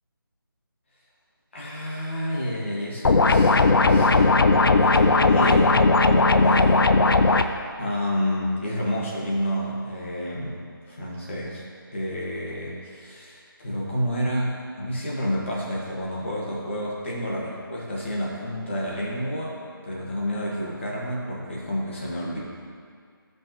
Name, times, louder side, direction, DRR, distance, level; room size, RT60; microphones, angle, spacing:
voice 1, 1.5-4.4 4.8-7.5 7.8-10.6 10.9-11.6 11.9-22.4, equal, 30° left, -5 dB, 1.6 m, -30 dB
sound 1, 3.0-7.4, left 3 dB, 75° left, 0.5 m, -17 dB
13.0 x 5.4 x 3.0 m, 2.1 s
figure-of-eight pair, 175°, 12 cm